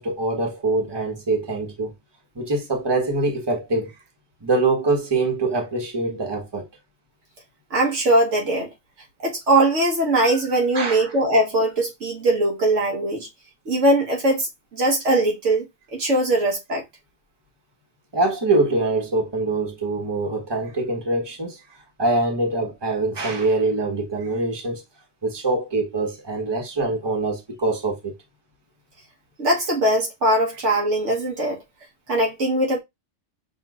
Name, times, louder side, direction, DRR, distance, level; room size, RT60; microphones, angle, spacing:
voice 1, 0.0-1.9 2.3-3.9 4.4-6.6 10.7-11.1 18.1-21.6 22.0-24.8 25.2-28.1, right 2 dB, 25° right, 1.1 m, -24 dB
voice 2, 7.7-8.7 9.2-13.3 13.6-15.6 15.9-16.8 29.4-31.6 32.1-32.8, right 1 dB, 90° right, 1.6 m, -21 dB
6.0 x 3.0 x 2.4 m
omnidirectional pair, 1.2 m